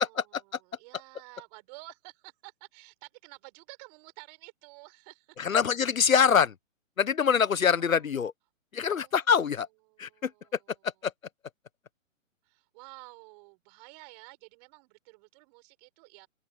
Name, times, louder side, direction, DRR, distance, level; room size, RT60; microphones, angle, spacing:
voice 1, 0.0-5.6 7.7-8.1 8.9-9.3 9.9-10.9 12.4-16.3, right 28 dB, 30° right, 7.1 m, -52 dB
voice 2, 5.4-6.5 7.0-8.3 8.7-9.7 10.0-10.3 11.0-11.1, left 7 dB, 80° left, 1.2 m, -24 dB
open air
hypercardioid pair, 140°, 40 cm